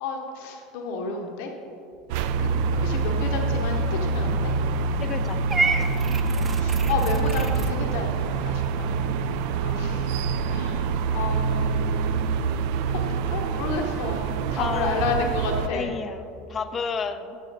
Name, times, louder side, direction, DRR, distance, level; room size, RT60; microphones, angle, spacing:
voice 1, 0.0-1.5 2.4-2.5 2.8-4.5 6.6-8.9 9.6-10.2 10.5-12.4 12.9-15.9, left 4 dB, 75° left, 2 dB, 0.9 m, -31 dB
sound 1, 2.1-15.7, right 5 dB, 70° right, 0.3 m, -25 dB
voice 2, 5.0-5.4 14.6-15.3 15.7-17.4, left 5 dB, 35° left, 10 dB, 0.5 m, -31 dB
Purr / Meow, 5.5-7.7, right 3 dB, 25° right, 0.7 m, -28 dB
9.2 x 6.5 x 3.9 m, 2.7 s
supercardioid pair, 100°, 0 cm